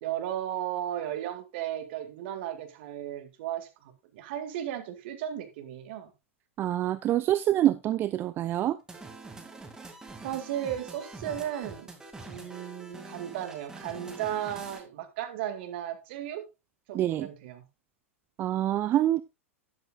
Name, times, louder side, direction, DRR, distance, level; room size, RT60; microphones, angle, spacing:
voice 1, 0.0-6.1 10.2-11.9 12.3-16.5 16.9-17.6, right 11 dB, 50° right, 2.2 m, -35 dB
voice 2, 6.6-8.8 16.9-17.3 18.4-19.2, right 13 dB, 30° right, 0.6 m, -26 dB
sound 1, 8.9-14.8, right 3 dB, 10° right, 2.6 m, -45 dB
12.5 x 11.0 x 2.5 m
figure-of-eight pair, 95°, 7 cm